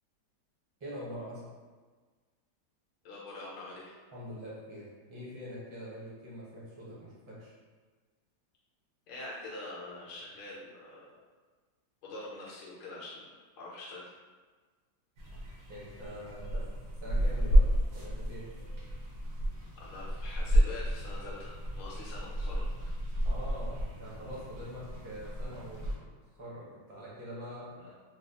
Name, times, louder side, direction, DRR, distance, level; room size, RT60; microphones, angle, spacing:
voice 1, 0.8-1.4 4.1-7.5 15.7-16.6 17.0-17.6 17.9-18.5 23.2-27.9, equal, 30° right, -8 dB, 0.5 m, -44 dB
voice 2, 3.0-4.0 9.1-11.2 12.0-14.1 19.8-22.7 27.8-27.9, left 2 dB, 75° left, -5 dB, 1.3 m, -44 dB
sound 1, 15.2-25.9, equal, 60° right, 0.9 m, -31 dB
4.0 x 2.3 x 2.7 m, 1.4 s
omnidirectional pair, 2.1 m